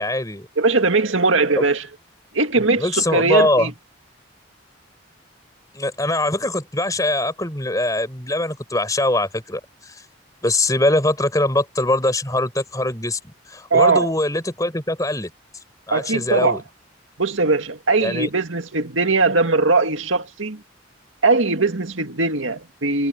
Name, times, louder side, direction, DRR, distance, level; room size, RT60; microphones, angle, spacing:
voice 1, 0.0-0.5 1.6-1.7 2.6-3.7 5.7-10.0 10.4-15.3 15.9-16.6 18.0-18.3, left 1 dB, 15° left, 4.4 m, -22 dB
voice 2, 0.6-1.9 2.3-3.7 13.7-14.1 15.9-16.6 17.2-20.6 21.2-23.1, right 3 dB, 80° right, 2.1 m, -20 dB
head